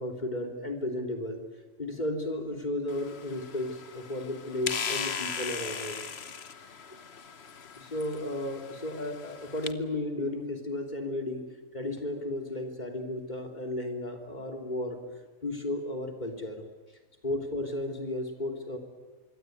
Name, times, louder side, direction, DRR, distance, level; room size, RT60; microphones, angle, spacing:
voice 1, 0.0-1.4 1.8-6.0 7.8-11.4 11.7-15.0 15.4-16.6 17.2-18.8, left 1 dB, 30° left, 3 dB, 3.5 m, -34 dB
sound 1, 2.9-9.7, left 6 dB, 50° left, 1.3 m, -38 dB
26.0 x 23.0 x 9.4 m, 1.3 s
omnidirectional pair, 1.4 m